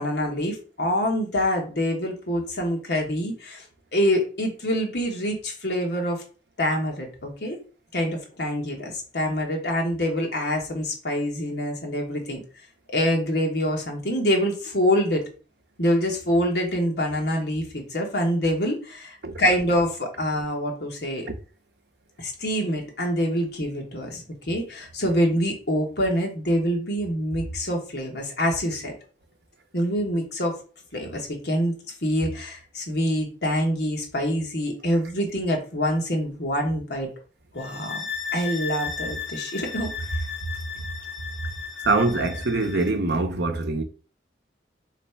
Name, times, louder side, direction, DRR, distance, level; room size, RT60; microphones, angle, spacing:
voice 1, 0.0-3.6 3.9-6.2 6.6-7.6 7.9-12.4 12.9-15.2 15.8-21.3 22.2-28.9 29.7-30.5 30.9-31.7 32.0-37.1 37.5-38.1 38.3-40.3, equal, 60° left, 1.4 m, -25 dB
sound 1, 37.6-43.0, left 6 dB, 80° left, 0.8 m, -35 dB
voice 2, 41.8-43.8, right 3 dB, 65° right, 0.7 m, -23 dB
3.2 x 3.2 x 4.5 m
head